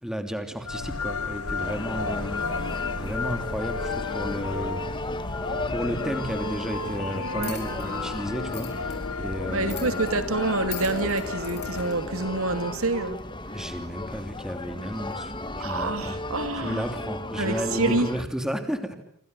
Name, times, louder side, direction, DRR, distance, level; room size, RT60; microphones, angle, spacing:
voice 1, 0.0-4.9 5.7-9.9 13.5-16.2 16.5-18.9, equal, 5° right, 7 dB, 2.9 m, -33 dB
sound 1, 0.6-11.9, left 4 dB, 80° left, 1.3 m, -33 dB
sound 2, 1.6-18.2, left 2 dB, 20° left, 1.4 m, -35 dB
sound 3, 7.4-11.9, left 10 dB, 50° left, 7.1 m, -43 dB
voice 2, 9.5-13.2 15.6-16.8 17.4-18.1, right 2 dB, 70° right, 10 dB, 2.6 m, -27 dB
28.0 x 26.5 x 8.1 m, 0.68 s
head